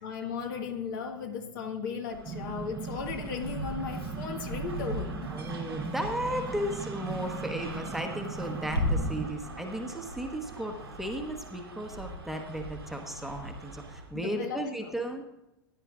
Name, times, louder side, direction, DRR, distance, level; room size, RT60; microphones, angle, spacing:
voice 1, 0.0-5.3 14.1-14.9, left 6 dB, 60° left, 4 dB, 1.7 m, -36 dB
sound 1, 2.1-14.2, right 2 dB, 85° right, 1.9 m, -44 dB
sound 2, 2.3-9.3, right 6 dB, 25° right, 0.9 m, -39 dB
sound 3, 3.4-8.9, left 1 dB, 85° left, 1.6 m, -36 dB
voice 2, 5.3-15.2, equal, ahead, 4 dB, 1.1 m, -35 dB
15.5 x 10.0 x 2.5 m, 0.97 s
figure-of-eight pair, 95°, 12 cm